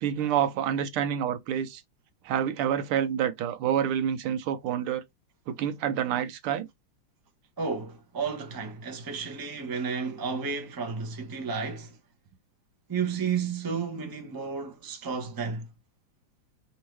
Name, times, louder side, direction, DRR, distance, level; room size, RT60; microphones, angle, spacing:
voice 1, 0.0-1.8 2.2-5.0 5.5-6.7, right 9 dB, 85° right, 1.7 m, -28 dB
voice 2, 7.6-12.0 12.9-15.7, right 5 dB, 20° right, 0.5 m, -32 dB
4.5 x 3.7 x 3.1 m
omnidirectional pair, 2.4 m